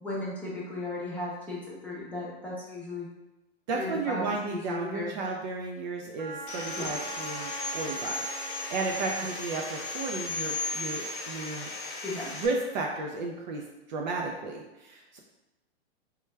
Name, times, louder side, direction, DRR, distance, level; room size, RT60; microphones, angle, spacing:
voice 1, 0.0-3.1 3.7-4.2 4.5-5.2 6.8-6.9 12.0-12.3, left 2 dB, 5° left, -7 dB, 0.7 m, -36 dB
voice 2, 3.7-11.7 12.3-15.2, right 3 dB, 45° right, 0 dB, 0.4 m, -34 dB
Wind instrument woodwind instrument, 6.2-10.0, right 4 dB, 65° right, 0.9 m, -42 dB
Sawing, 6.5-12.5, left 3 dB, 50° left, 0.8 m, -36 dB
3.2 x 2.2 x 3.2 m, 0.99 s
hypercardioid pair, 125°, 33 cm